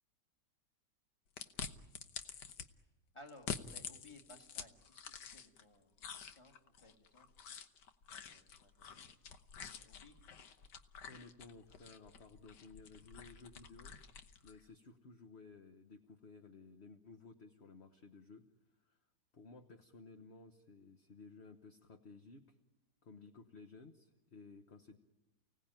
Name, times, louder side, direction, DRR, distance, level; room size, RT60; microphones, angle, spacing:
sound 1, 1.4-2.7 3.3-5.6 6.0-14.6, left 7 dB, 80° left, 1.7 m, -48 dB
voice 1, 3.1-7.3 8.1-9.1 9.8-10.2, left 1 dB, 15° left, 3 dB, 2.2 m, -60 dB
voice 2, 11.1-13.9 14.4-18.5 18.8-19.0 19.3-22.6 23.0-25.0, left 4 dB, 40° left, 5 dB, 1.3 m, -56 dB
30.0 x 18.0 x 9.0 m, 1.0 s
omnidirectional pair, 1.8 m